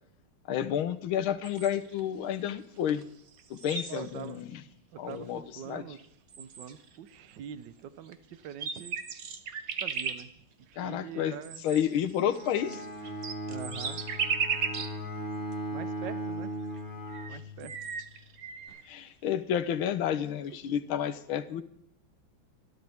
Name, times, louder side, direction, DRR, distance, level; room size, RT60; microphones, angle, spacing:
voice 1, 0.5-3.0 3.5-4.6 5.0-5.4 5.7-5.8 10.8-11.3 11.6-12.8 18.9-21.6, left 9 dB, 80° left, 11 dB, 1.8 m, -30 dB
sound 1, 1.4-2.0 2.9-3.0 3.3-4.4 5.1-5.2 6.0-6.1 6.3-7.0 8.1-8.2 8.4-10.2 11.4-15.0 15.5-15.6 16.8-16.9 17.1-18.8, right 6 dB, 50° right, 1.3 m, -36 dB
voice 2, 3.9-4.4 4.9-6.0 6.4-9.0 9.8-10.3 10.7-11.6 13.5-14.0 15.7-16.5 17.3-17.7 18.7-18.8 20.5-20.6, right 9 dB, 65° right, 13 dB, 1.5 m, -43 dB
Bowed string instrument, 12.2-18.0, equal, 10° left, 2.0 m, -38 dB
26.0 x 12.0 x 3.5 m, 0.70 s
omnidirectional pair, 2.2 m